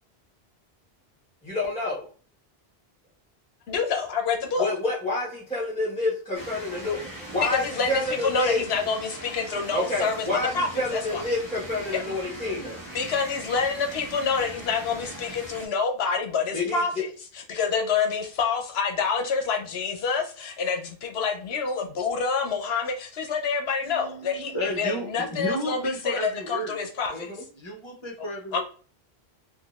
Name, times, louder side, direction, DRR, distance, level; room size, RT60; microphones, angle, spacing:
voice 1, 1.4-2.1 4.6-7.0 7.3-8.6 9.7-12.8 16.5-16.8 27.1-27.4, left 2 dB, 5° left, 1.2 m, -28 dB
voice 2, 3.7-4.7 7.4-10.2 10.5-11.2 12.9-27.3 28.5-28.6, left 5 dB, 75° left, 0.9 m, -27 dB
sound 1, 6.3-15.7, right 1 dB, 20° right, 1.0 m, -40 dB
voice 3, 23.8-26.7 27.5-28.6, right 1 dB, 30° left, 0.9 m, -33 dB
3.7 x 2.6 x 2.4 m
omnidirectional pair, 1.1 m